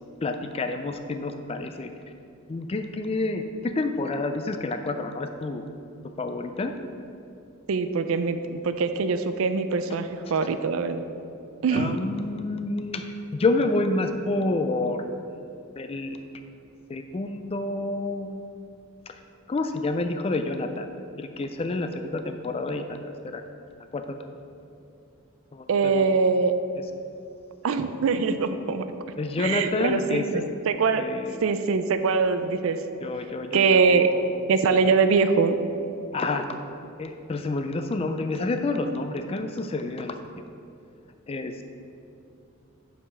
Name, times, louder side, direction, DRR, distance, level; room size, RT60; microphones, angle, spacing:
voice 1, 0.2-1.9 2.5-5.7 6.2-6.7 11.7-13.1 13.3-15.1 15.3-15.4 15.8-16.2 16.9-18.4 19.1-19.2 19.5-20.9 21.2-23.0 23.3-23.4 23.9-24.0 25.5-26.0 29.2-30.4 31.0-31.4 33.0-34.4 36.1-36.5 37.0-40.2 41.3-41.6, left 2 dB, 25° left, 7 dB, 0.3 m, -28 dB
voice 2, 7.7-11.0 11.6-12.0 25.7-26.5 27.6-28.9 29.4-31.1 31.4-32.8 33.5-34.1 34.5-35.6, right 5 dB, 65° right, 10 dB, 0.4 m, -23 dB
5.4 x 4.9 x 6.0 m, 2.6 s
head